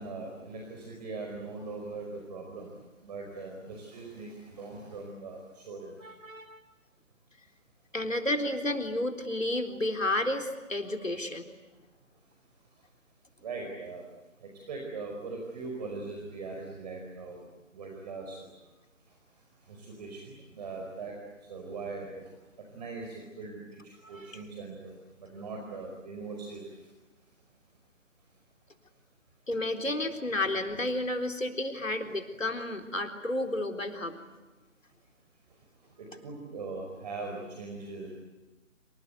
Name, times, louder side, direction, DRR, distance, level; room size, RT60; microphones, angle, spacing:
voice 1, 0.0-6.1 12.7-12.9 13.4-14.1 14.4-18.7 19.0-26.9 35.5-38.1, right 3 dB, 35° right, 1 dB, 5.0 m, -41 dB
voice 2, 6.0-6.6 7.9-11.5 24.0-24.3 29.5-34.2, left 1 dB, 80° left, 5 dB, 4.0 m, -31 dB
27.0 x 26.5 x 8.3 m, 1.1 s
figure-of-eight pair, 145°, 39 cm